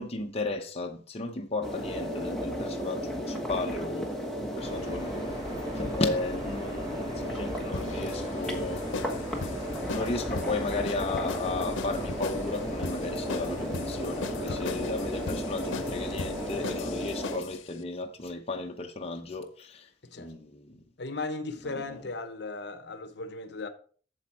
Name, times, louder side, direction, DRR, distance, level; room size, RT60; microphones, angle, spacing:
voice 1, 0.0-4.1 4.5-5.2 5.7-8.8 9.9-19.9 20.2-20.8 21.6-22.1, left 2 dB, 30° left, 0.8 m, -34 dB
sound 1, 1.6-17.4, equal, ahead, 1.3 m, -34 dB
sound 2, 4.6-16.8, equal, 20° right, 3.3 m, -43 dB
sound 3, 7.7-17.6, left 4 dB, 90° left, 0.7 m, -39 dB
voice 2, 14.3-14.8 20.1-20.3 21.0-23.7, left 3 dB, 60° left, 0.9 m, -37 dB
8.1 x 7.1 x 4.2 m
head